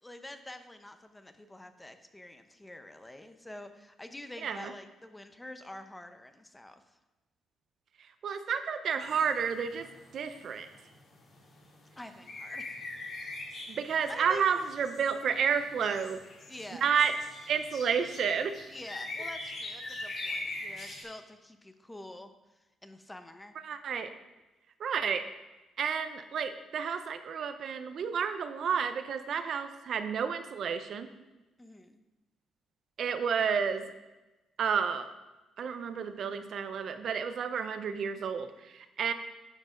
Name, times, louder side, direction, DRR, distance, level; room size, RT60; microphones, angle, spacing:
voice 1, 0.0-6.8 12.0-12.7 14.1-14.7 16.5-16.9 18.7-23.5 31.6-32.0, left 1 dB, 10° left, 8 dB, 0.8 m, -47 dB
voice 2, 8.2-9.9 10.1-10.7 13.7-16.2 16.8-17.1 17.5-18.5 23.6-24.1 24.8-25.2 25.8-31.1 33.0-33.9 34.6-35.1 35.6-39.1, right 7 dB, 60° right, 9 dB, 0.6 m, -31 dB
sound 1, 9.0-21.0, left 2 dB, 50° left, 3.6 m, -43 dB
10.5 x 5.3 x 5.1 m, 1.1 s
cardioid pair, 90°, 0 cm